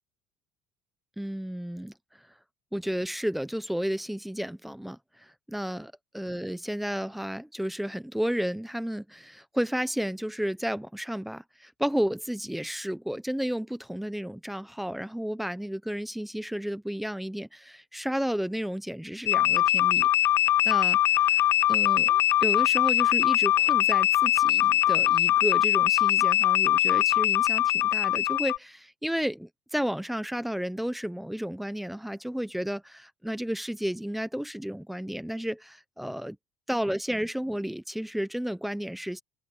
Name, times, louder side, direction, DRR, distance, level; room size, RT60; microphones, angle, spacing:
voice 1, 1.2-2.2 2.7-20.1 20.6-36.4 36.7-39.2, equal, ahead, 0.7 m, -32 dB
sound 1, 19.3-28.6, left 13 dB, 30° left, 0.4 m, -22 dB
open air
cardioid pair, 175°, 7 cm